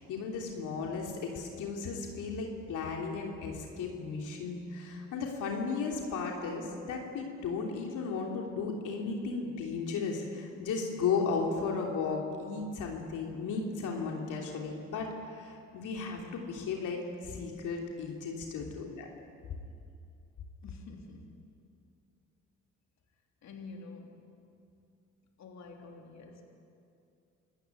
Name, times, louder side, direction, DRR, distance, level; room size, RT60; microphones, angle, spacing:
voice 1, 0.0-19.1, left 5 dB, 85° left, 1 dB, 3.2 m, -35 dB
voice 2, 20.6-21.4 23.4-24.2 25.4-26.5, left 3 dB, 65° left, 2 dB, 3.3 m, -48 dB
27.0 x 14.5 x 9.7 m, 2.5 s
cardioid pair, 90°, 30 cm